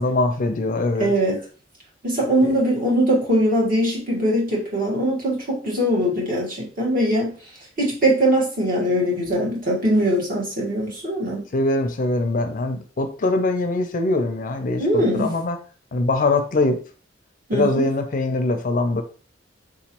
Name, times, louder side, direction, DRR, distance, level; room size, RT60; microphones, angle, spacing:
voice 1, 0.0-1.1 2.4-2.5 11.5-15.6 15.9-16.8 17.5-19.0, left 2 dB, 45° left, 7 dB, 0.5 m, -22 dB
voice 2, 1.0-1.4 2.0-7.3 7.8-11.4 14.8-15.3 17.5-17.9, right 1 dB, 45° right, -4 dB, 1.5 m, -21 dB
3.8 x 3.0 x 2.9 m, 0.39 s
head